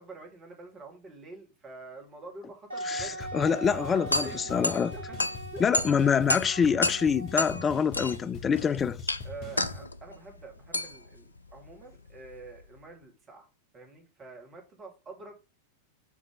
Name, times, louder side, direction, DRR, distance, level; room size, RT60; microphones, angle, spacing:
voice 1, 0.0-3.2 3.6-5.2 5.5-5.6 9.2-13.5 13.7-15.4, right 3 dB, 25° right, 2.4 m, -46 dB
Wind instrument woodwind instrument, 2.7-8.3, right 2 dB, 70° right, 1.3 m, -41 dB
voice 2, 2.9-4.9 5.6-9.0, left 6 dB, 20° left, 0.4 m, -26 dB
sound 1, 3.0-9.8, left 4 dB, 35° left, 1.9 m, -43 dB
sound 2, 3.7-12.8, left 1 dB, 80° left, 0.5 m, -33 dB
7.2 x 3.9 x 5.1 m
figure-of-eight pair, 90°, 0 cm